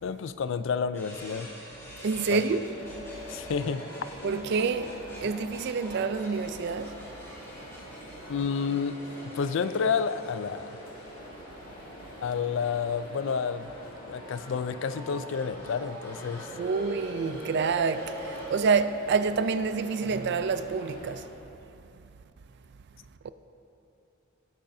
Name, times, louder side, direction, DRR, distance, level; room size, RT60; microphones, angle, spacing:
voice 1, 0.0-1.5 2.3-2.4 3.3-3.9 8.3-9.0 9.3-10.8 12.2-13.7 14.0-16.5, left 6 dB, 60° left, 0.4 m, -30 dB
sound 1, 0.9-18.5, equal, 15° left, 2.3 m, -45 dB
voice 2, 2.0-2.7 4.2-6.9 16.5-21.2 23.2-23.3, right 5 dB, 55° right, 0.4 m, -28 dB
sound 2, 2.6-21.3, equal, 80° left, 2.6 m, -45 dB
17.5 x 8.7 x 2.7 m
head